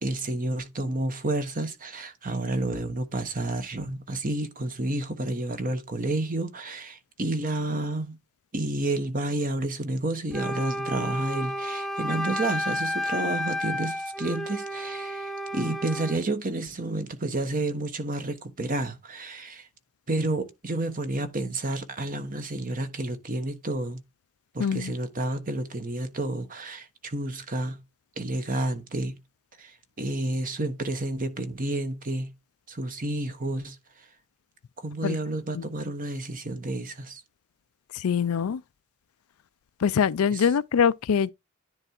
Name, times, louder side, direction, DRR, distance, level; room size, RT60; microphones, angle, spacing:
voice 1, 0.0-8.2 8.5-19.7 20.1-24.0 24.5-27.8 28.2-29.2 29.6-32.3 32.7-33.8 34.8-37.2 40.3-40.5, right 2 dB, 40° right, 1.2 m, -30 dB
Wind instrument woodwind instrument, 10.3-16.2, left 1 dB, ahead, 0.5 m, -31 dB
voice 2, 24.6-24.9 35.0-35.2 35.6-35.7 37.9-38.6 39.8-41.3, left 7 dB, 85° left, 0.4 m, -23 dB
10.0 x 3.6 x 4.4 m
head